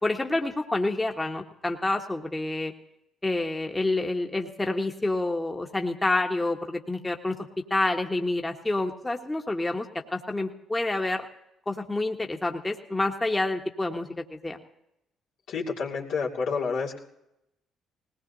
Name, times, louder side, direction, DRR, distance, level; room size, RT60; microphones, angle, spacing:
voice 1, 0.0-2.7 3.2-9.9 10.1-11.2 11.7-14.1 14.4-14.6, left 2 dB, 15° left, 2 dB, 1.5 m, -28 dB
voice 2, 15.5-17.0, left 5 dB, 70° left, -2 dB, 2.6 m, -29 dB
19.5 x 18.5 x 2.8 m, 0.84 s
hypercardioid pair, 60°, 0 cm